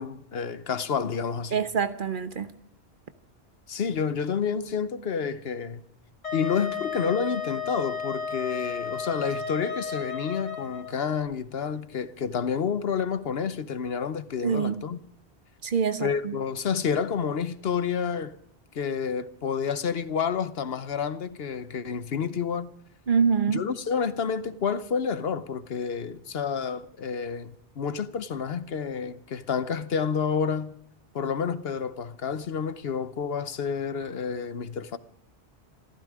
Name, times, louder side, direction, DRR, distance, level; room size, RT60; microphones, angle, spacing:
voice 1, 0.0-1.6 3.7-5.8 6.3-15.0 16.0-18.4 18.7-22.7 23.5-30.7 31.1-35.0, left 6 dB, 65° left, 1.1 m, -29 dB
voice 2, 1.5-2.5 14.4-14.8 15.6-16.4 23.1-23.6, right 6 dB, 50° right, 1.0 m, -25 dB
Wind instrument woodwind instrument, 6.2-10.9, left 6 dB, 85° left, 2.4 m, -33 dB
27.0 x 14.0 x 3.6 m
omnidirectional pair, 1.1 m